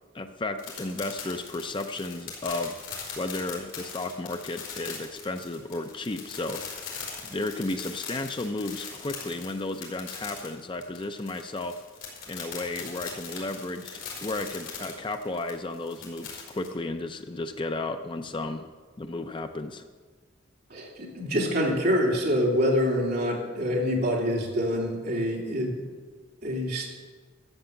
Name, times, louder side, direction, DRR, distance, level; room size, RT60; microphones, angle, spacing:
voice 1, 0.1-2.7 3.2-6.9 7.2-11.8 12.3-18.7 19.0-19.9, left 2 dB, 25° left, 7 dB, 0.5 m, -33 dB
sound 1, 0.6-16.7, left 6 dB, 70° left, 4.4 m, -40 dB
voice 2, 20.7-25.8 26.4-26.9, equal, 50° right, -2 dB, 3.1 m, -26 dB
13.5 x 8.5 x 7.1 m, 1.5 s
head